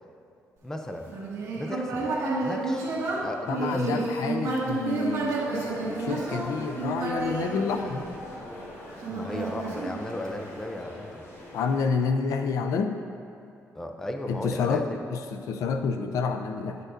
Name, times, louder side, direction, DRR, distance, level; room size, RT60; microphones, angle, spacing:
voice 1, 0.6-1.1 1.5-2.1 2.4-2.9 3.2-4.1 9.1-11.2 13.7-15.0, left 1 dB, 10° left, 4 dB, 0.4 m, -35 dB
Human voice, 1.1-8.4 9.0-10.5, right 2 dB, 65° right, 1.4 m, -30 dB
voice 2, 3.5-8.1 11.5-13.0 14.3-14.8 15.1-16.8, left 5 dB, 80° left, 6 dB, 0.4 m, -29 dB
sound 1, 5.6-11.8, left 1 dB, 50° left, 1.4 m, -42 dB
9.3 x 6.6 x 2.5 m, 2.7 s
cardioid pair, 155°, 6 cm